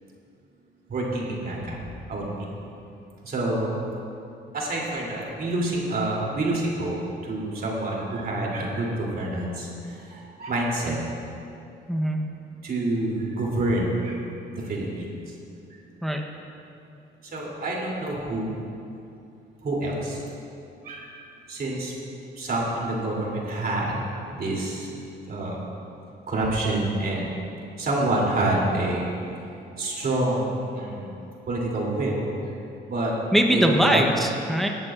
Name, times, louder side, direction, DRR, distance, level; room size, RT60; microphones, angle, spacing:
voice 1, 0.9-1.8 2.1-2.5 3.2-3.8 4.5-7.0 7.2-11.0 12.6-14.2 14.5-15.1 17.3-18.5 19.6-20.2 20.8-21.1 21.5-21.9 22.4-24.0 24.3-24.9 25.3-25.6 26.3-27.3 27.8-29.0 29.8-31.1 31.5-32.3 32.9-33.1 33.5-34.0, right 2 dB, 50° right, -3 dB, 3.1 m, -27 dB
voice 2, 11.9-12.3 16.0-16.2 33.3-34.7, equal, ahead, 1 dB, 0.9 m, -22 dB
18.5 x 11.0 x 2.5 m, 2.7 s
cardioid pair, 90°, 20 cm